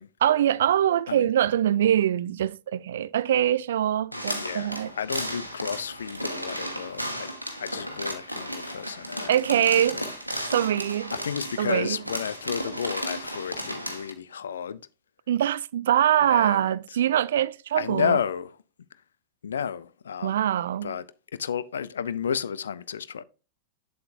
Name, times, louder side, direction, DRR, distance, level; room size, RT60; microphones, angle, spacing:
voice 1, 0.2-4.9 9.3-10.0 10.5-11.1 11.6-12.0 15.3-18.2 20.2-21.0, right 10 dB, 60° right, 0.3 m, -23 dB
voice 2, 4.1-7.3 7.6-10.1 11.1-14.8 16.2-16.8 17.8-18.6 19.4-20.4 20.8-21.1 21.3-23.2, left 7 dB, 65° left, 0.5 m, -32 dB
sound 1, 4.1-14.1, equal, 90° right, 1.3 m, -34 dB
7.9 x 7.6 x 2.7 m
figure-of-eight pair, 90°, 0 cm